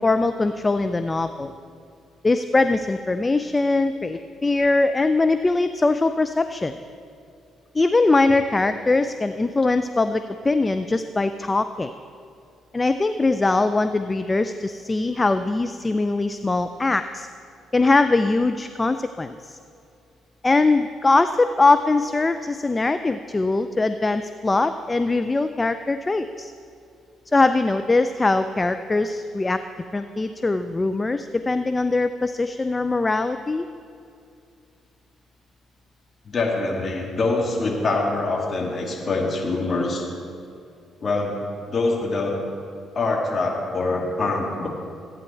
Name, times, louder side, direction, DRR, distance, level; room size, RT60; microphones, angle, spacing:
voice 1, 0.0-1.5 2.2-6.7 7.7-11.9 12.7-17.3 17.7-19.6 20.4-26.5 27.3-29.6 29.9-33.7, left 3 dB, 25° left, 10 dB, 0.5 m, -21 dB
voice 2, 36.2-40.0 41.0-41.4 41.7-42.4 42.9-44.7, left 3 dB, 40° left, -1 dB, 2.4 m, -24 dB
14.5 x 9.1 x 4.5 m, 2.5 s
hypercardioid pair, 45°, 0 cm